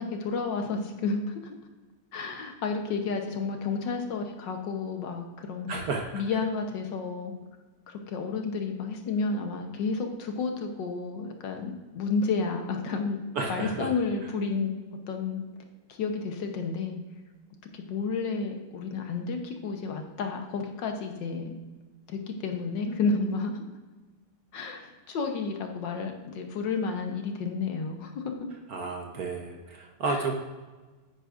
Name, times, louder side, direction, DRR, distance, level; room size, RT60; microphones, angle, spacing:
voice 1, 0.0-1.6 2.1-5.7 6.1-7.4 7.9-13.2 13.5-14.7 15.1-15.4 15.9-17.0 17.7-21.6 22.1-23.6 24.5-28.3 30.0-30.3, left 4 dB, 65° left, 4 dB, 1.5 m, -31 dB
voice 2, 5.7-6.0 13.3-13.9 28.7-30.3, right 3 dB, 60° right, 2 dB, 1.1 m, -31 dB
9.5 x 9.2 x 2.5 m, 1.3 s
omnidirectional pair, 2.3 m